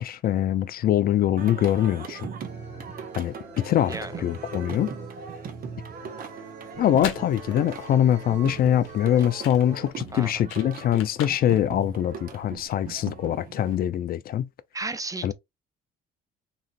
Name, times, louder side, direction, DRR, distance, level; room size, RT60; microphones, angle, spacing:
voice 1, 0.0-2.3 3.2-4.9 6.8-14.5 15.2-15.3, left 11 dB, 50° left, 0.4 m, -23 dB
Singing, 1.4-13.8, right 6 dB, 45° right, 0.7 m, -40 dB
sound 1, 2.4-9.9, right 4 dB, 60° right, 1.7 m, -44 dB
voice 2, 3.9-4.2 10.1-10.3 14.7-15.3, right 3 dB, 15° right, 0.4 m, -33 dB
sound 2, 6.7-12.8, left 8 dB, 80° left, 0.7 m, -41 dB
3.0 x 2.5 x 2.4 m
supercardioid pair, 70°, 20 cm